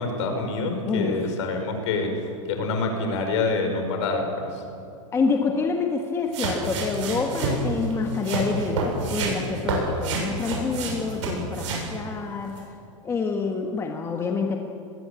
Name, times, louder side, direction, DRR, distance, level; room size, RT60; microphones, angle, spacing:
voice 1, 0.0-2.1 2.5-4.6, left 3 dB, 60° left, 5 dB, 5.2 m, -26 dB
voice 2, 0.8-1.2 5.1-12.6 13.0-14.6, left 4 dB, 15° left, 3 dB, 1.5 m, -27 dB
sound 1, 6.3-11.9 12.6-12.7, right 3 dB, 65° right, 7.4 m, -28 dB
21.0 x 17.0 x 8.5 m, 2.5 s
hypercardioid pair, 140°, 17 cm